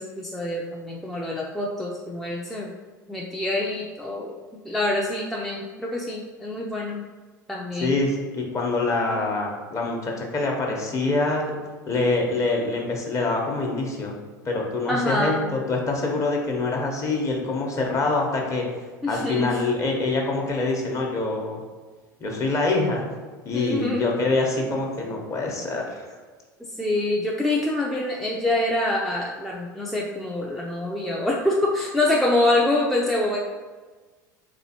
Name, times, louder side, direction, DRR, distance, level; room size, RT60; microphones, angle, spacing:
voice 1, 0.0-2.7 3.1-7.0 7.5-8.0 14.9-15.5 19.0-19.6 23.5-24.1 26.7-33.4, left 1 dB, ahead, -3 dB, 0.4 m, -25 dB
voice 2, 7.8-11.5 11.9-14.1 14.4-18.6 19.1-21.6 22.2-23.0 23.4-26.0, left 3 dB, 30° left, 0 dB, 0.9 m, -25 dB
3.5 x 3.0 x 2.8 m, 1.4 s
hypercardioid pair, 75°, 10 cm